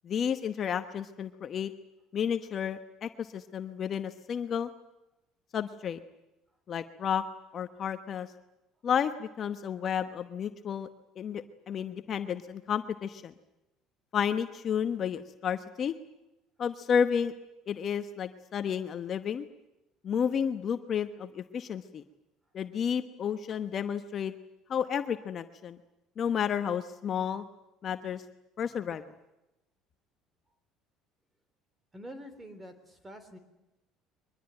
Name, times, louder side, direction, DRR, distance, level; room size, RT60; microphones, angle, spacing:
voice 1, 0.0-1.7 2.1-4.7 5.5-6.0 6.7-7.2 7.5-8.3 8.8-10.9 11.2-13.3 14.1-15.9 16.6-17.3 17.7-19.5 20.0-22.0 22.5-24.3 24.7-25.8 26.2-27.4 27.8-28.2 28.6-29.0, left 8 dB, 40° left, 8 dB, 1.1 m, -31 dB
voice 2, 31.9-33.4, equal, 15° right, 11 dB, 3.5 m, -46 dB
23.0 x 21.5 x 9.0 m, 0.95 s
cardioid pair, 135°, 0 cm